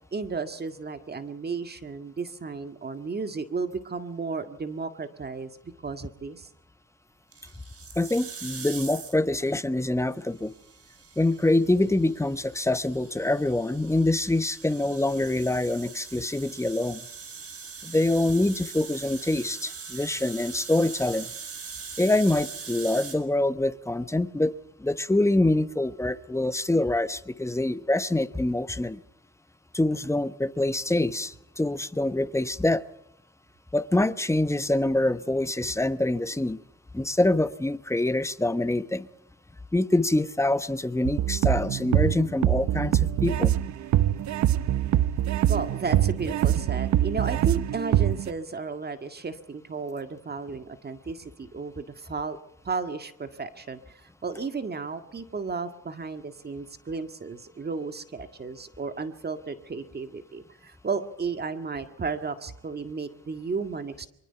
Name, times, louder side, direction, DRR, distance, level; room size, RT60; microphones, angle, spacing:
voice 1, 0.1-5.5 5.8-6.5 45.5-52.4 52.6-64.1, right 4 dB, 35° right, 9 dB, 1.8 m, -33 dB
sound 1, 7.3-9.3 10.4-23.2, right 6 dB, 50° right, 4.6 m, -42 dB
voice 2, 8.0-10.5 11.2-17.0 17.8-21.3 22.0-24.5 24.8-29.0 29.7-32.8 33.7-36.6 36.9-39.1 39.7-43.5, left 2 dB, 10° left, 12 dB, 1.1 m, -25 dB
sound 2, 41.0-48.3, right 12 dB, 70° right, 0.8 m, -24 dB
24.0 x 23.5 x 5.8 m, 0.78 s
cardioid pair, 90°, 30 cm